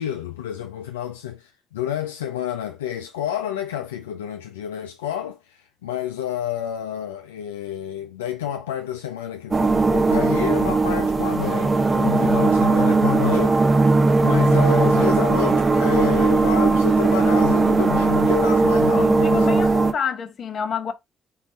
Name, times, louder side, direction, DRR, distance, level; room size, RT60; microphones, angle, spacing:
voice 1, 0.0-13.6 14.2-19.6, left 10 dB, 85° left, 0.4 m, -29 dB
sound 1, 9.5-19.9, right 3 dB, 35° right, 1.0 m, -18 dB
voice 2, 12.0-12.7 18.9-20.9, left 6 dB, 55° left, 1.0 m, -29 dB
4.7 x 2.4 x 4.3 m
hypercardioid pair, 45°, 0 cm